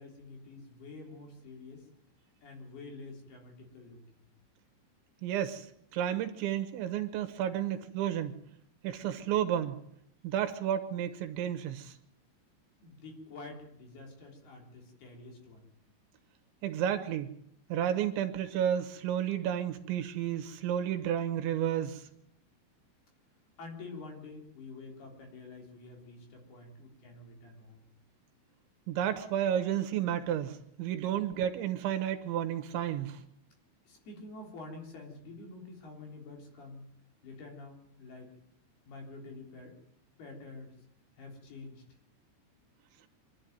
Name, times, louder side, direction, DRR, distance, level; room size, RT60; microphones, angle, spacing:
voice 1, 0.0-1.9 2.4-4.3 12.8-15.7 23.6-27.9 33.9-36.8 37.2-38.3 38.9-39.7 40.2-40.7 41.2-41.8, left 3 dB, 55° left, 2 dB, 5.4 m, -48 dB
voice 2, 5.2-5.7 5.9-8.4 8.8-9.8 10.2-11.9 16.6-17.3 17.7-22.1 28.9-33.2, right 10 dB, 75° right, 9 dB, 3.3 m, -31 dB
24.5 x 12.0 x 9.3 m, 0.74 s
omnidirectional pair, 5.7 m